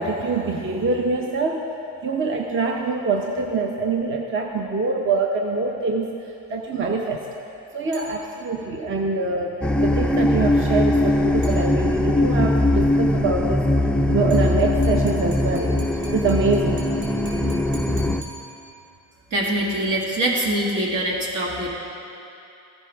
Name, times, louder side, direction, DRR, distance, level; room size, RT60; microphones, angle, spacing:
voice 1, 0.0-1.6 2.0-6.1 6.5-7.3 7.7-13.7 14.1-16.8, right 3 dB, 35° right, 1 dB, 0.8 m, -24 dB
sound 1, 7.9-8.7 11.4-12.2 14.3-19.0, right 2 dB, 85° right, 2.4 m, -43 dB
sound 2, 9.6-18.2, left 1 dB, 5° left, 0.3 m, -21 dB
voice 2, 19.3-21.7, right 1 dB, 60° right, -3 dB, 2.2 m, -23 dB
14.5 x 10.0 x 3.5 m, 2.7 s
cardioid pair, 105°, 37 cm